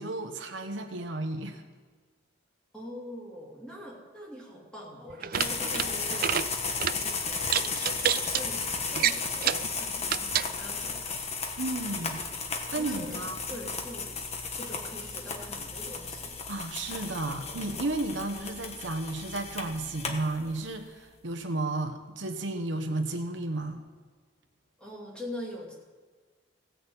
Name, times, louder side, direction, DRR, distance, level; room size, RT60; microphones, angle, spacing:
voice 1, 0.0-1.6 11.6-12.2 12.7-13.6 16.5-23.8, right 2 dB, 75° right, 6 dB, 1.1 m, -33 dB
voice 2, 2.7-6.6 6.8-11.2 11.5-11.7 12.0-12.2 12.8-14.2 14.5-16.4 24.8-25.7, equal, 5° left, -4 dB, 2.9 m, -43 dB
sound 1, 5.1-5.9 6.1-6.5 6.8-7.0 7.5-8.4 8.9-9.7 10.1-10.5, right 10 dB, 50° right, 0.4 m, -28 dB
sound 2, 5.3-20.8, left 4 dB, 35° left, 1.3 m, -34 dB
16.5 x 6.5 x 8.1 m, 1.5 s
head